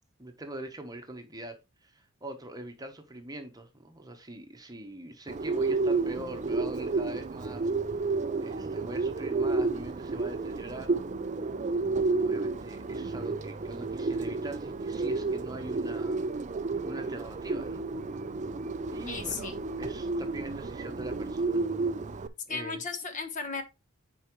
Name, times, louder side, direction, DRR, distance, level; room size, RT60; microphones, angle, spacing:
voice 1, 0.2-1.6 1.8-7.7 8.4-11.0 12.2-16.2 16.8-17.8 18.9-19.5 19.8-21.6 22.5-22.8, right 1 dB, 20° right, 1.0 m, -42 dB
Bird, 5.3-22.3, right 3 dB, 35° right, 0.4 m, -31 dB
voice 2, 19.1-19.6 22.5-23.6, left 4 dB, 35° left, 1.1 m, -35 dB
9.4 x 4.7 x 3.1 m
head